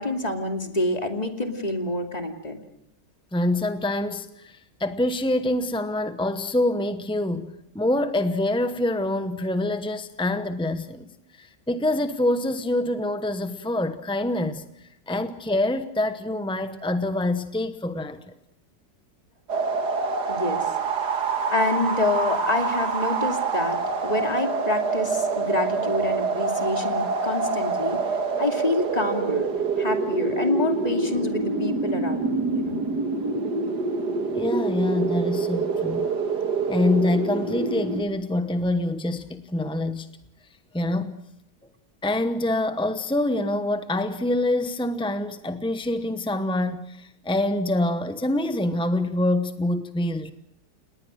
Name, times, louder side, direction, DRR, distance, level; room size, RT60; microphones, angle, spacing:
voice 1, 0.0-2.6 20.3-21.0 21.5-28.0 28.4-29.5 29.8-32.8, left 2 dB, 20° left, 5 dB, 2.5 m, -27 dB
voice 2, 3.3-11.1 11.4-18.2 34.3-36.1 36.7-40.2 40.7-41.1 42.0-50.3, left 1 dB, 5° left, 10 dB, 0.5 m, -26 dB
sound 1, 19.5-38.0, right 4 dB, 65° right, 2.4 m, -26 dB
30.0 x 19.0 x 6.4 m, 0.78 s
omnidirectional pair, 1.9 m